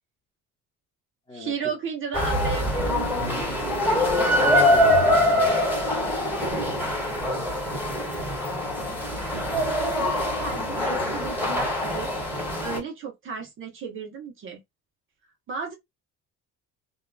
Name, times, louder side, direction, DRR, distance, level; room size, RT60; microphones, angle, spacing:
voice 1, 1.3-3.8 10.0-12.1 12.6-14.6 15.5-15.7, right 6 dB, 40° right, 0.8 m, -35 dB
sound 1, 2.1-12.8, left 1 dB, 5° right, 1.7 m, -24 dB
voice 2, 3.9-6.0, left 2 dB, 15° left, 1.0 m, -39 dB
2.7 x 2.3 x 2.2 m
cardioid pair, 145°, 30 cm